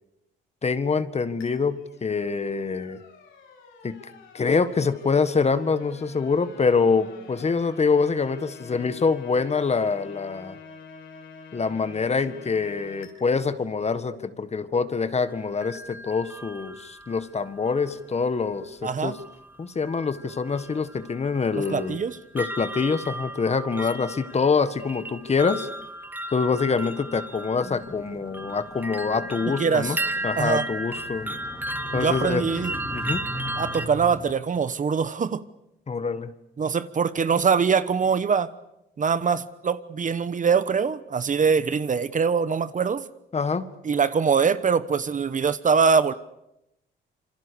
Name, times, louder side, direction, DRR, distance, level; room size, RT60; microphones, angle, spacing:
voice 1, 0.6-3.0 3.8-4.0 4.3-10.6 11.5-19.2 19.6-22.0 22.3-25.7 26.3-30.0 30.2-31.3 31.9-32.4 32.9-33.2 35.9-36.3 43.3-43.7, left 5 dB, 35° left, 12 dB, 1.7 m, -25 dB
sound 1, 1.4-13.1, left 5 dB, 85° left, 6.4 m, -47 dB
sound 2, 15.2-18.0 19.1-19.5 19.8-33.9, right 1 dB, 10° right, 1.3 m, -35 dB
voice 2, 18.8-19.1 21.7-22.2 29.6-30.0 30.4-30.6 31.9-32.7 33.6-35.4 36.6-38.5 39.0-43.0 43.8-46.1, right 6 dB, 40° right, 14 dB, 1.2 m, -23 dB
sound 3, 27.5-34.3, left 1 dB, 15° left, 3.6 m, -40 dB
27.0 x 24.5 x 6.9 m, 0.87 s
cardioid pair, 90°, 20 cm